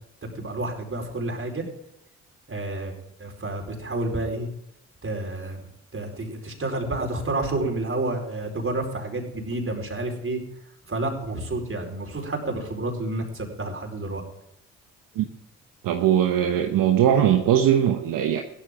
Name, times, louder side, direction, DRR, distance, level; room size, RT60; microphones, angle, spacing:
voice 1, 0.3-1.7 2.5-2.9 3.2-4.5 5.0-10.4 10.9-14.2, right 2 dB, 40° right, 2 dB, 4.8 m, -30 dB
voice 2, 15.8-18.4, right 10 dB, 70° right, 4 dB, 1.2 m, -20 dB
15.5 x 13.5 x 3.8 m, 0.82 s
hypercardioid pair, 45°, 35 cm